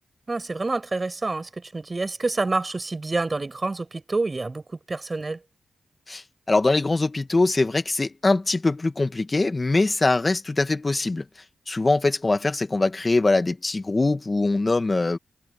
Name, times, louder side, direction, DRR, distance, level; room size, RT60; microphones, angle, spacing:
voice 1, 0.3-5.4, right 3 dB, 35° right, 7.9 m, -28 dB
voice 2, 6.5-11.2 11.7-15.2, left 3 dB, 35° left, 1.9 m, -22 dB
cardioid pair, 65°, 0 cm